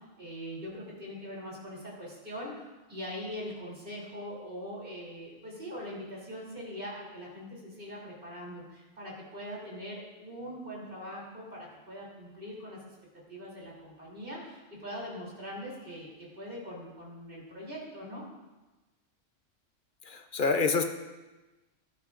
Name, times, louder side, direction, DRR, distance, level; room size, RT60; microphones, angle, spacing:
voice 1, 0.0-18.3, equal, 40° right, -4 dB, 3.4 m, -42 dB
voice 2, 20.1-20.8, left 4 dB, 50° left, 5 dB, 0.7 m, -27 dB
14.5 x 11.5 x 2.5 m, 1.1 s
omnidirectional pair, 1.3 m